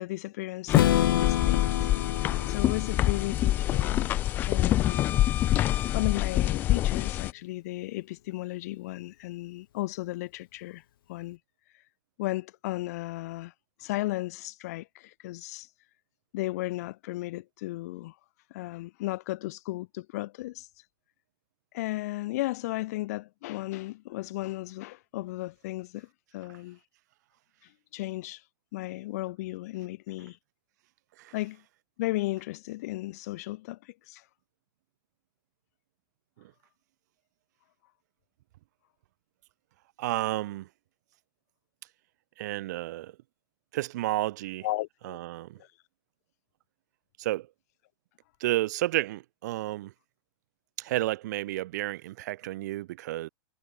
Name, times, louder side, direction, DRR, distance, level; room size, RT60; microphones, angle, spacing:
voice 1, 0.0-1.9 2.5-4.2 4.4-5.2 5.9-10.8 11.1-11.4 12.2-13.5 13.8-15.7 16.3-18.2 18.5-20.7 21.7-26.8 27.9-28.4 28.7-30.4 31.3-31.6 32.0-34.2 44.6-45.2 45.6-45.7, left 18 dB, 40° left, 1.9 m, -35 dB
Strum, 0.7-4.7, left 11 dB, 65° left, 3.0 m, -29 dB
sound 1, 0.7-7.3, left 13 dB, 15° left, 0.4 m, -26 dB
voice 2, 40.0-40.7 42.4-43.1 43.7-44.7 45.0-45.6 47.2-47.5 48.4-49.9 50.8-53.3, right 16 dB, 45° right, 7.9 m, -31 dB
supercardioid pair, 170°, 12 cm